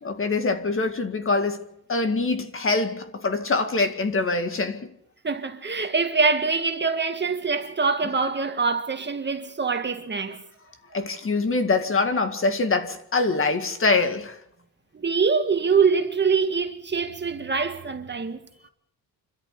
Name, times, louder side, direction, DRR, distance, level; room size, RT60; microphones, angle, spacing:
voice 1, 0.0-4.9 10.9-14.4, left 3 dB, 35° left, 2.1 m, -24 dB
voice 2, 5.2-10.4 14.9-18.4, right 5 dB, 30° right, 2.0 m, -24 dB
26.0 x 13.0 x 8.5 m
cardioid pair, 120°, 37 cm